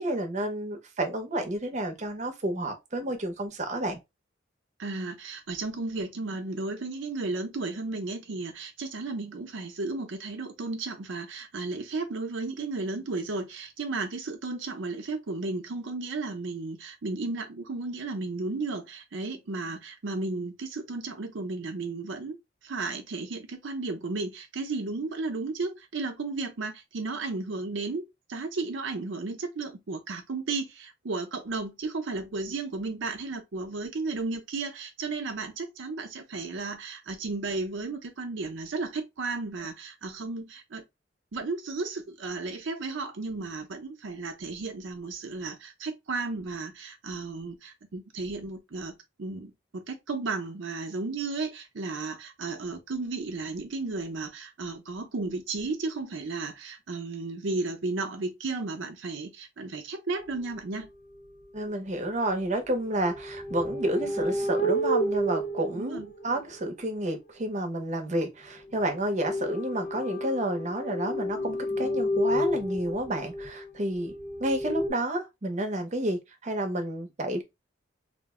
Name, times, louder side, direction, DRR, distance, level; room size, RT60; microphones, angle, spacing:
voice 1, 0.0-4.0 61.5-74.1 74.4-77.4, right 1 dB, 40° right, 0.7 m, -30 dB
voice 2, 4.8-22.4 22.6-40.8 41.3-60.9 65.8-66.1, right 3 dB, 75° right, 0.6 m, -34 dB
sound 1, 60.3-60.4 61.1-61.3 62.3-66.7 68.9-74.9, equal, 55° left, 0.7 m, -31 dB
2.5 x 2.0 x 3.6 m
head